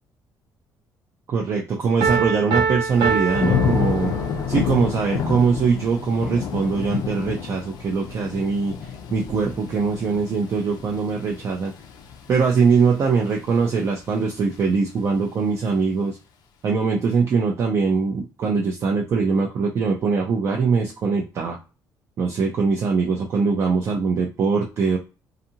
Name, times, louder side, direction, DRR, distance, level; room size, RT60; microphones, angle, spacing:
voice 1, 1.3-4.1 4.5-8.8 9.1-11.7 12.3-16.2 16.6-21.6 22.2-25.0, right 5 dB, 35° right, -1 dB, 0.4 m, -22 dB
Piano, 2.0-4.6, right 6 dB, 85° right, 0.7 m, -24 dB
Thunder / Rain, 2.9-13.8 14.2-14.7, left 7 dB, 65° left, 0.5 m, -29 dB
2.6 x 2.4 x 2.8 m, 0.31 s
cardioid pair, 180°, 7 cm